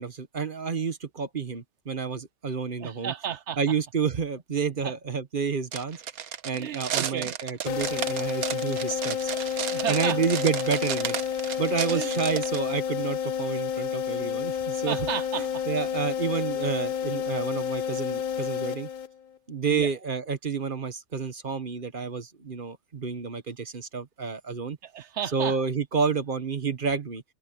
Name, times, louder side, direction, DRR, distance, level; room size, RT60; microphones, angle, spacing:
voice 1, 0.0-3.1 3.6-6.0 6.4-9.3 9.9-11.2 11.6-15.0 15.4-18.9 19.5-24.8 25.3-27.2, right 5 dB, 40° right, 1.3 m, -29 dB
voice 2, 2.8-3.6 4.8-4.9 6.5-7.3 9.7-10.2 11.9-12.1 14.9-15.7 19.7-19.9 24.8-25.6, right 9 dB, 65° right, 0.8 m, -33 dB
sound 1, 5.7-12.6, right 9 dB, 80° right, 1.4 m, -33 dB
sound 2, 7.7-19.4, left 8 dB, 65° left, 0.4 m, -30 dB
omnidirectional pair, 1.5 m